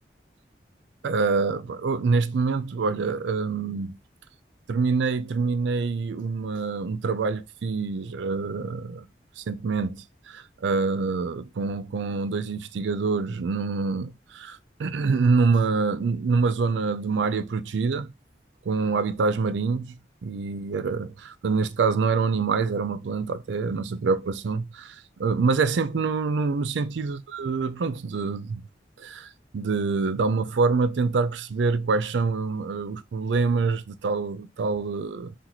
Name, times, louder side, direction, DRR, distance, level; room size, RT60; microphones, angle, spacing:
voice 1, 1.0-4.0 4.7-9.1 9.4-10.0 10.3-18.1 18.7-20.0 20.2-28.6 29.0-35.3, right 4 dB, 85° right, 0.4 m, -26 dB
3.0 x 2.9 x 3.8 m
head